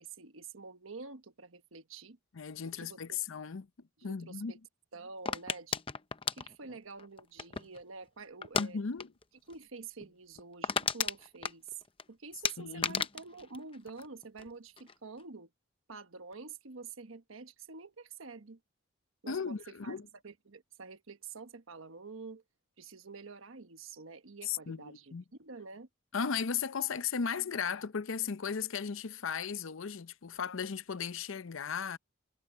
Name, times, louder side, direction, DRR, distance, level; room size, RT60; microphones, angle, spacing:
voice 1, 0.0-2.2 2.6-3.2 4.0-4.6 4.9-5.8 6.3-8.9 9.5-11.8 12.1-15.5 15.9-18.6 19.2-19.6 19.8-20.0 20.2-22.4 22.8-25.9, right 4 dB, 75° right, 1.2 m, -48 dB
voice 2, 2.3-3.7 4.0-4.5 8.6-9.1 12.6-13.0 19.3-20.0 24.5-25.2 26.1-32.0, left 6 dB, 70° left, 0.6 m, -36 dB
sound 1, 5.3-7.8 8.4-8.7 9.0-9.2 9.5-9.6 10.0-10.1 10.4-12.0 12.4-14.5 14.8-15.2, left 6 dB, 25° left, 0.7 m, -34 dB
head